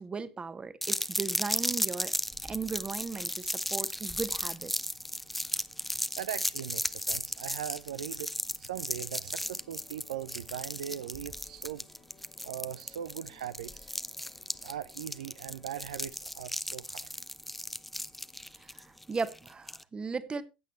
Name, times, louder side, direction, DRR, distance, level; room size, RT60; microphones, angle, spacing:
voice 1, 0.0-2.1 2.4-4.7 18.6-20.4, right 4 dB, 25° right, 1.2 m, -37 dB
sound 1, 0.8-19.8, left 1 dB, ahead, 0.6 m, -35 dB
voice 2, 6.2-8.3 8.6-11.8 12.4-13.9 14.6-17.1, right 10 dB, 75° right, 0.4 m, -40 dB
sound 2, 9.3-15.9, left 7 dB, 40° left, 2.0 m, -62 dB
15.5 x 8.3 x 3.1 m
figure-of-eight pair, 70°, 4 cm